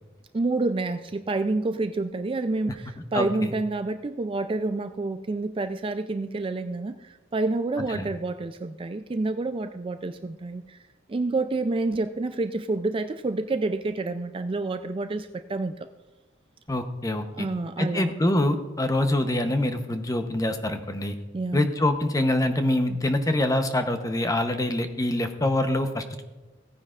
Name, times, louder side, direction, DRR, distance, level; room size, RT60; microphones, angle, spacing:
voice 1, 0.3-10.8 11.1-15.9 17.3-18.1 21.3-21.7, right 3 dB, 30° right, 9 dB, 0.4 m, -28 dB
voice 2, 16.7-17.5 17.8-21.2 21.5-26.2, left 1 dB, 20° left, 7 dB, 0.8 m, -25 dB
16.5 x 9.6 x 2.4 m, 1.1 s
head